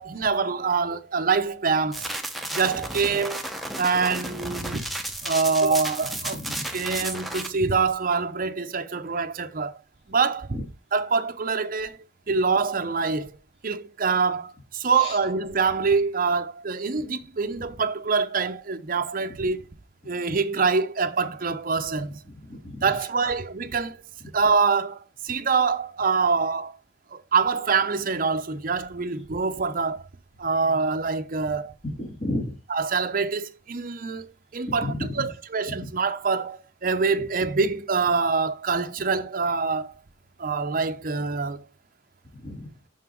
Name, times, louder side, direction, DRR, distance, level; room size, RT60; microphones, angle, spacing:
voice 1, 0.0-2.1 2.5-3.4 3.8-4.9 5.2-6.4 6.7-9.8 10.1-10.6 10.9-12.0 12.3-13.3 13.6-19.7 20.1-22.2 22.8-24.0 24.3-26.8 27.1-30.0 30.4-31.7 32.7-39.9 40.4-41.7, right 5 dB, 45° right, 0.7 m, -25 dB
sound 1, 1.9-7.5, right 1 dB, ahead, 0.8 m, -33 dB
voice 2, 6.3-6.6 15.0-15.2 22.5-22.9 31.8-32.5 34.8-35.0 35.8-35.9 42.3-42.7, left 1 dB, 35° left, 3.0 m, -32 dB
6.0 x 5.7 x 4.5 m
head